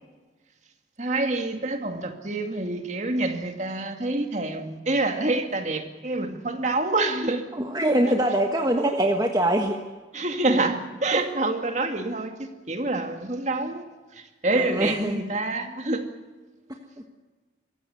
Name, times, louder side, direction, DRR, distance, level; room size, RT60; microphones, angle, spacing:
voice 1, 1.0-7.4 10.1-13.8 14.1-16.0, right 2 dB, 40° right, 5 dB, 2.2 m, -27 dB
voice 2, 7.5-9.8 14.5-15.2, right 1 dB, 20° right, 3 dB, 1.4 m, -23 dB
24.0 x 15.5 x 9.6 m, 1.3 s
head